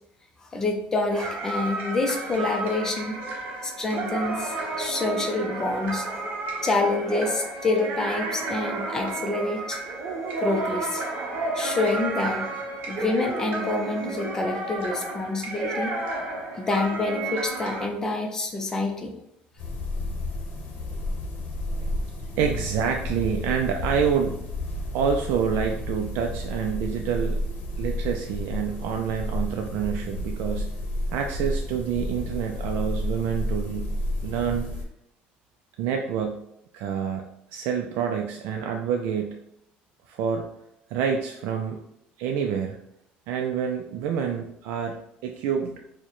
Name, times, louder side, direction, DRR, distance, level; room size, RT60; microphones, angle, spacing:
voice 1, 0.4-3.1 3.6-6.1 6.6-9.8 10.4-11.0 11.5-12.5 12.9-15.9 16.6-19.1, left 2 dB, 15° left, 4 dB, 0.4 m, -27 dB
sound 1, 1.1-17.9, right 2 dB, 55° right, 0.9 m, -32 dB
sound 2, 19.6-34.8, left 1 dB, 55° left, 0.8 m, -31 dB
voice 2, 22.4-24.4 24.9-27.4 27.8-30.7 31.1-33.9 34.2-34.7 35.8-36.4 36.7-37.2 37.5-39.4 40.1-40.5 40.9-41.8 42.2-42.8 43.3-45.8, right 7 dB, 75° right, 3 dB, 0.3 m, -27 dB
4.5 x 2.1 x 2.9 m, 0.78 s
cardioid pair, 175°, 4 cm